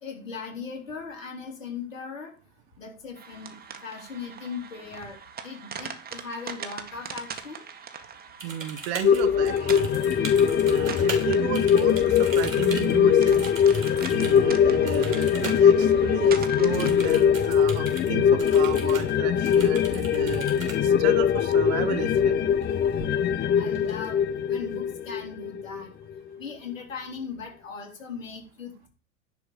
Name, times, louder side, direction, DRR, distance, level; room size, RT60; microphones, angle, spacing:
voice 1, 0.0-2.3 2.8-7.7 23.5-25.9 26.4-28.9, left 5 dB, 75° left, 2 dB, 3.7 m, -38 dB
sound 1, 3.1-17.3, right 6 dB, 25° right, 1.6 m, -42 dB
voice 2, 8.4-9.9 10.6-13.4 14.1-22.4, right 12 dB, 55° right, 11 dB, 1.3 m, -34 dB
sound 2, 8.4-11.3 11.5-14.4 14.9-15.6 15.9-16.0 16.7-18.1 18.4-19.1 19.4-20.8 22.5-22.7 23.0-23.4 23.7-24.4, right 3 dB, 90° right, 2.9 m, -39 dB
sound 3, 9.0-25.8 26.2-26.3, left 8 dB, 25° left, 0.9 m, -22 dB
10.5 x 4.8 x 7.0 m, 0.35 s
figure-of-eight pair, 85°, 39 cm